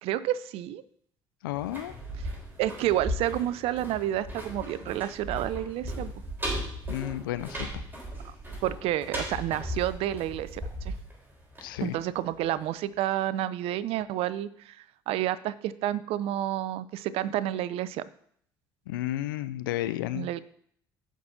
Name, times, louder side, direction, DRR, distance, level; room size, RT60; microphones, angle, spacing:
voice 1, 0.0-0.8 2.6-6.1 8.6-10.9 11.8-18.1 20.1-20.4, right 13 dB, 60° right, 17 dB, 0.5 m, -30 dB
voice 2, 1.4-1.9 6.9-7.7 11.6-12.0 18.9-20.4, left 14 dB, 80° left, 13 dB, 0.5 m, -32 dB
sound 1, 1.5-12.3 12.6-12.7, equal, 20° right, 4.0 m, -37 dB
16.5 x 6.0 x 2.8 m, 0.64 s
hypercardioid pair, 55°, 11 cm